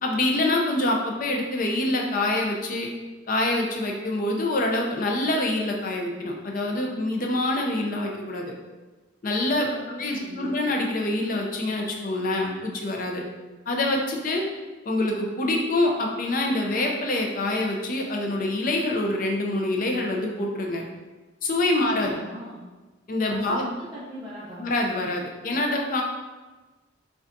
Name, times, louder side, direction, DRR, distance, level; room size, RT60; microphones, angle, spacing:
voice 1, 0.0-2.9 3.3-8.5 9.2-9.7 10.0-13.2 13.7-14.4 14.9-20.8 21.4-22.1 23.1-23.7 24.6-26.0, left 2 dB, 40° left, 1 dB, 0.5 m, -25 dB
voice 2, 9.7-10.5 22.0-22.6 23.3-23.4 23.8-24.7, equal, 20° right, -11 dB, 0.6 m, -40 dB
5.1 x 2.3 x 2.6 m, 1.2 s
head